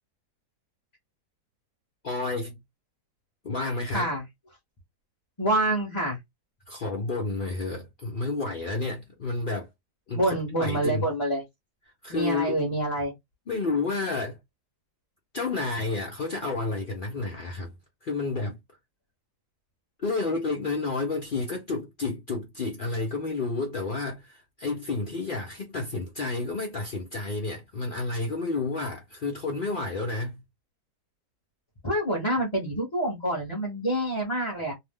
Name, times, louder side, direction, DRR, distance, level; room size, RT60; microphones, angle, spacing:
voice 1, 2.0-2.6 3.4-4.1 6.7-9.7 10.1-11.1 12.0-12.6 13.5-14.4 15.3-17.7 18.0-18.6 20.0-30.4, left 3 dB, 70° left, 0.5 m, -30 dB
voice 2, 3.9-4.2 5.4-6.2 10.1-11.4 12.1-13.1 31.8-34.7, right 1 dB, 25° left, 0.7 m, -27 dB
2.7 x 2.0 x 3.4 m
omnidirectional pair, 1.8 m